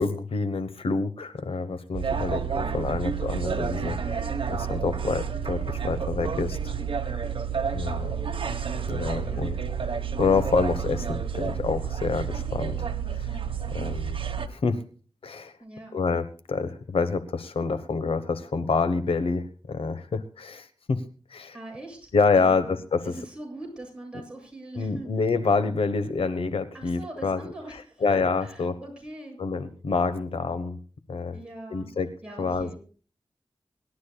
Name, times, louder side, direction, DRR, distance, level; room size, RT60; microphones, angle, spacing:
voice 1, 0.0-2.4 2.7-6.7 7.7-8.1 8.9-9.5 10.2-13.4 13.7-14.2 14.5-14.8 15.2-15.5 15.9-21.0 21.3-21.5 22.1-23.1 24.8-27.4 28.0-28.8 29.4-30.8 31.1-31.4 31.7-32.1 32.4-32.7, left 4 dB, 90° left, 11 dB, 1.2 m, -27 dB
sound 1, 1.9-14.5, right 7 dB, 70° right, 1.3 m, -30 dB
voice 2, 2.6-2.9 9.2-9.5 15.6-15.9 21.5-25.1 26.7-29.4 31.3-31.9 32.2-32.8, right 2 dB, 10° right, -1 dB, 7.8 m, -42 dB
25.0 x 12.0 x 2.3 m, 0.38 s
wide cardioid pair, 100°, 9 cm